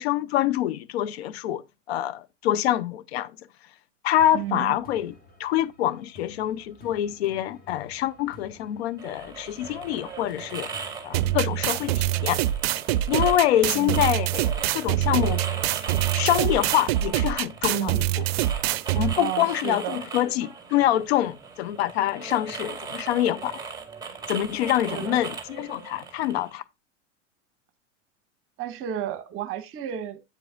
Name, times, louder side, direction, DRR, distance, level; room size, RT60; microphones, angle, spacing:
voice 1, 0.0-1.6 1.9-3.3 4.0-5.1 5.4-10.7 11.0-12.4 13.1-15.4 16.1-18.2 19.0-23.6 24.3-26.6, left 12 dB, 55° left, 0.7 m, -25 dB
sound 1, 4.2-19.2, left 2 dB, 25° left, 2.3 m, -51 dB
voice 2, 4.3-4.7 13.7-14.0 17.7-18.0 19.2-20.0 24.9-25.2 28.6-30.2, right 11 dB, 35° right, 1.2 m, -32 dB
sound 2, 9.0-26.5, right 5 dB, 10° right, 2.1 m, -38 dB
sound 3, 11.1-19.1, right 13 dB, 55° right, 0.6 m, -25 dB
8.9 x 7.6 x 2.5 m
figure-of-eight pair, 90°, 37 cm